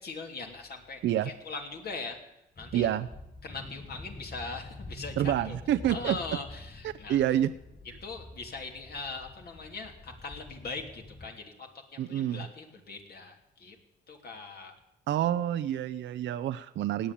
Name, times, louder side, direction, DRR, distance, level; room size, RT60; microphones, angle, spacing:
voice 1, 0.0-2.2 2.6-2.9 3.4-5.6 5.9-7.2 8.0-13.8 14.1-14.8, left 4 dB, 50° left, 3 dB, 3.1 m, -41 dB
sound 1, 2.5-11.3, left 2 dB, 30° left, 5.0 m, -46 dB
voice 2, 2.7-3.1 5.2-6.2 6.8-7.5 12.0-12.5 15.1-17.1, right 11 dB, 70° right, 10 dB, 0.6 m, -28 dB
17.5 x 8.9 x 8.6 m, 0.88 s
cardioid pair, 90°, 20 cm